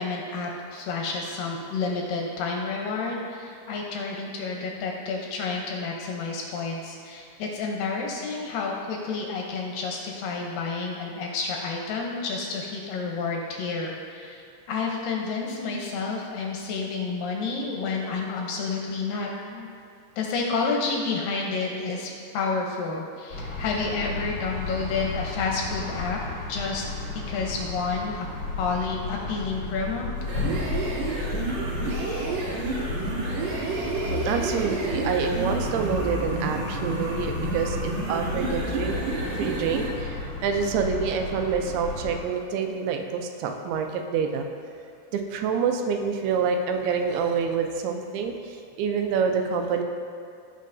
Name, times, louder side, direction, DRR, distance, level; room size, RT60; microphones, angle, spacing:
voice 1, 0.0-14.4 14.7-19.7 20.2-26.2 26.5-26.8 27.3-28.3 28.6-30.1, left 4 dB, 75° left, 0 dB, 2.2 m, -30 dB
sound 1, 23.3-42.2, left 3 dB, 40° left, 1.3 m, -33 dB
sound 2, 30.2-40.0, right 3 dB, 65° right, 3.2 m, -30 dB
voice 2, 34.1-39.0 39.4-44.5 45.1-49.8, right 6 dB, 85° right, 4 dB, 2.6 m, -27 dB
16.0 x 5.4 x 2.6 m, 2.4 s
omnidirectional pair, 4.5 m